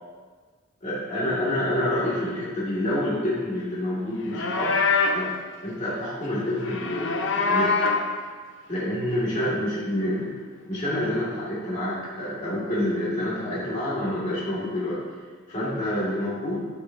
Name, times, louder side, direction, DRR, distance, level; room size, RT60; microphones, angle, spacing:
voice 1, 0.8-4.8 5.1-5.3 5.6-7.8 8.7-10.3 10.7-15.0 15.5-16.7, left 1 dB, 40° left, -9 dB, 2.2 m, -27 dB
Livestock farm animals working animals, 4.2-5.3 6.6-8.1, left 4 dB, 70° left, 0.7 m, -24 dB
10.5 x 7.9 x 2.8 m, 1.5 s
head